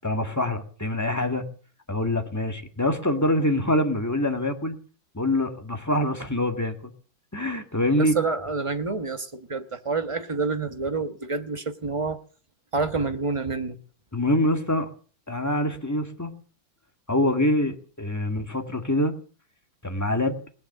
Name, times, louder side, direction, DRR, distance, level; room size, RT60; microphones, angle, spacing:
voice 1, 0.0-1.5 1.9-4.8 5.1-6.7 7.3-8.2 14.1-14.9 15.3-16.3 17.1-19.2 19.8-20.4, left 1 dB, 10° left, 5 dB, 1.7 m, -25 dB
voice 2, 8.0-12.2 12.7-13.8, right 4 dB, 20° right, 8 dB, 1.0 m, -28 dB
18.5 x 11.0 x 6.7 m, 0.42 s
omnidirectional pair, 2.1 m